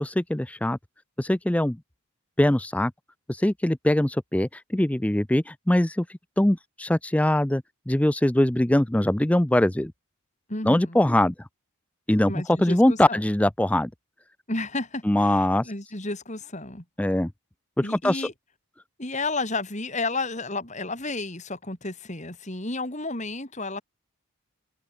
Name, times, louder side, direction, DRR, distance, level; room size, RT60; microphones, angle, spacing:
voice 1, 0.0-0.8 1.2-1.8 2.4-2.9 3.3-6.1 6.4-9.9 10.6-11.3 12.1-12.3 12.6-13.9 15.1-15.6 17.0-17.3 17.9-18.2, left 1 dB, 5° left, 0.4 m, -22 dB
voice 2, 10.5-11.0 12.3-13.2 14.5-16.8 17.8-18.3 19.0-23.8, left 2 dB, 30° left, 3.2 m, -32 dB
head